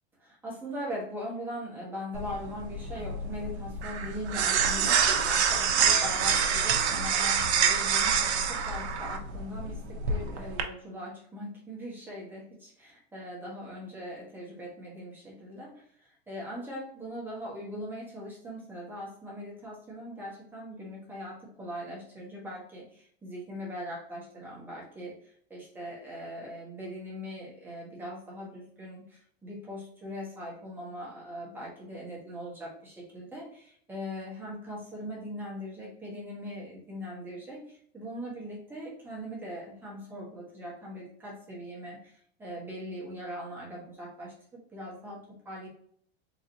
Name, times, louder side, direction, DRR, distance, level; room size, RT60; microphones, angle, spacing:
voice 1, 0.2-45.7, equal, 5° right, -5 dB, 1.5 m, -41 dB
sound 1, 2.1-10.6, right 6 dB, 85° right, 0.9 m, -27 dB
4.1 x 3.6 x 2.8 m, 0.64 s
supercardioid pair, 155°, 32 cm